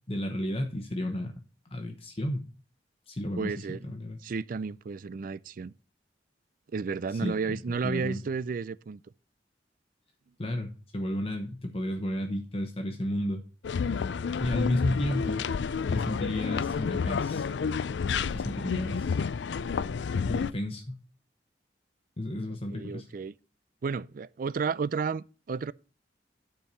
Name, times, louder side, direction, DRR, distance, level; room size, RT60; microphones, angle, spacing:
voice 1, 0.1-1.3 1.7-2.5 3.1-3.5 3.9-4.2 7.2-7.3 7.8-8.2 10.4-13.4 14.4-15.4 15.9-17.5 18.3-19.2 20.2-21.0 22.2-23.0, left 1 dB, 35° left, 1.0 m, -32 dB
voice 2, 3.4-3.9 4.2-5.7 6.7-9.0 22.5-23.4 23.8-25.7, right 5 dB, 50° right, 0.4 m, -32 dB
sound 1, 13.6-20.5, left 5 dB, 80° left, 0.4 m, -30 dB
10.0 x 4.6 x 6.7 m
head